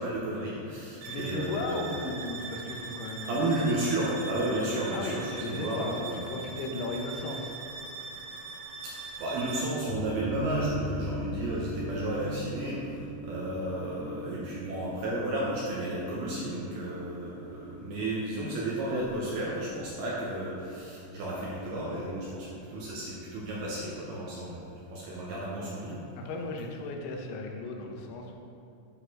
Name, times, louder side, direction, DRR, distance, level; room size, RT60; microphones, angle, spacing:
voice 1, 0.0-2.0 3.3-6.3 8.8-26.0, right 1 dB, 70° right, -6 dB, 2.6 m, -33 dB
voice 2, 1.0-3.7 4.9-7.6 26.2-28.3, left 2 dB, 80° left, 1 dB, 3.2 m, -36 dB
sound 1, 1.0-9.8, right 4 dB, 90° right, 3.5 m, -41 dB
sound 2, 9.9-21.2 21.6-21.7 21.9-22.0 22.5-22.6, equal, 65° left, 4.0 m, -39 dB
10.5 x 4.1 x 5.4 m, 2.7 s
omnidirectional pair, 5.4 m